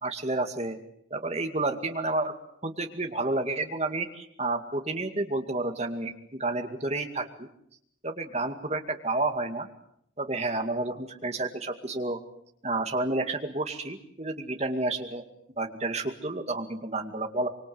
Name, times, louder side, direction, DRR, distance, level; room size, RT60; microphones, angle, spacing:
voice 1, 0.0-0.8 1.1-2.3 2.6-7.5 8.0-9.7 10.2-12.2 12.6-15.2 15.6-17.5, right 2 dB, 35° right, 5 dB, 2.3 m, -30 dB
25.0 x 24.5 x 7.9 m, 0.72 s
head